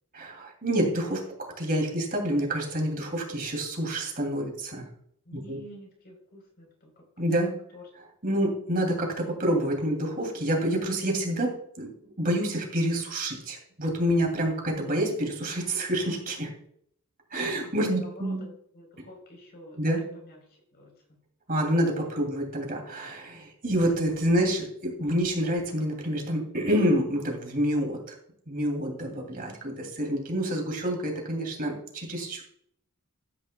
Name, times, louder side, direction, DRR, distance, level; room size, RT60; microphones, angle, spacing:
voice 1, 0.1-1.2 1.6-4.9 5.3-5.6 7.2-7.5 8.2-16.5 17.3-18.4 19.8-20.1 21.5-28.0 28.5-32.4, right 1 dB, 40° right, 1 dB, 2.7 m, -28 dB
voice 2, 5.3-7.3 7.7-7.8 17.3-17.5 17.9-19.8 20.2-21.2 22.1-22.2, left 1 dB, 45° left, 1 dB, 3.9 m, -49 dB
13.5 x 9.8 x 2.2 m, 0.66 s
head